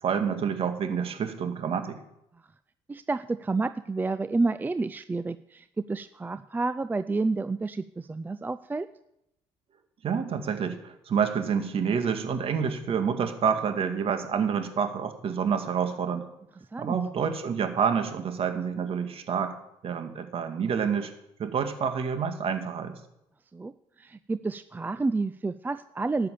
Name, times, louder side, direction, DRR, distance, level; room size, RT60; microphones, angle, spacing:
voice 1, 0.0-2.0 10.0-16.3 16.8-19.5 19.8-21.1 21.4-22.9, right 7 dB, 50° right, 7 dB, 2.0 m, -28 dB
voice 2, 2.9-8.9 16.7-17.0 23.5-23.7 24.0-26.3, right 3 dB, 15° right, 13 dB, 0.4 m, -30 dB
12.5 x 6.9 x 8.5 m, 0.83 s
supercardioid pair, 85°, 12 cm